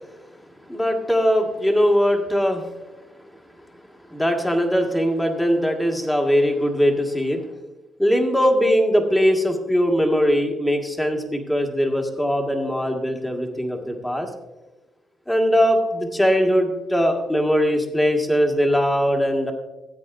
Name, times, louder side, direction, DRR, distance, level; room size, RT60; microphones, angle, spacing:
voice 1, 0.7-2.6 4.1-7.4 8.0-14.3 15.3-19.5, equal, 10° left, 3 dB, 1.7 m, -20 dB
15.5 x 8.3 x 2.6 m, 1.1 s
cardioid pair, 90°, 0 cm